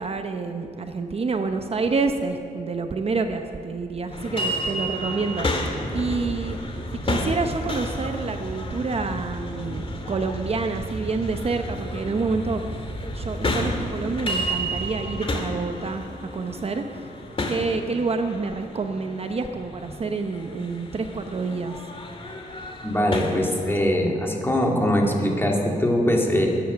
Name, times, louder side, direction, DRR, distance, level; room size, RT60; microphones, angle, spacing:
voice 1, 0.0-5.5 5.9-6.6 6.9-12.8 13.1-16.0 16.3-16.8 17.5-21.8, right 4 dB, 40° right, 6 dB, 0.8 m, -28 dB
sound 1, 4.1-23.8, left 1 dB, 35° left, 2.0 m, -32 dB
sound 2, 5.3-15.2, right 1 dB, 15° right, 4.8 m, -35 dB
voice 2, 22.8-26.5, equal, 15° left, 0 dB, 2.3 m, -22 dB
21.5 x 9.0 x 6.9 m, 2.5 s
wide cardioid pair, 120°, 15 cm